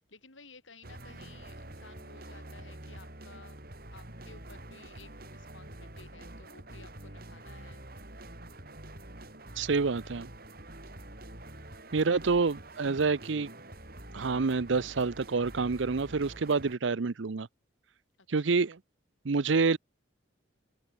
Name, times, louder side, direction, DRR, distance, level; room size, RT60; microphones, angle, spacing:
voice 1, 0.1-3.6 3.9-7.8 11.8-12.1 18.2-18.7, left 4 dB, 80° left, 6.9 m, -55 dB
sound 1, 0.8-16.7, right 1 dB, 50° right, 5.1 m, -47 dB
voice 2, 9.6-10.3 11.9-13.5 14.1-17.5 18.3-18.8 19.2-19.8, right 4 dB, 75° right, 0.7 m, -27 dB
open air
head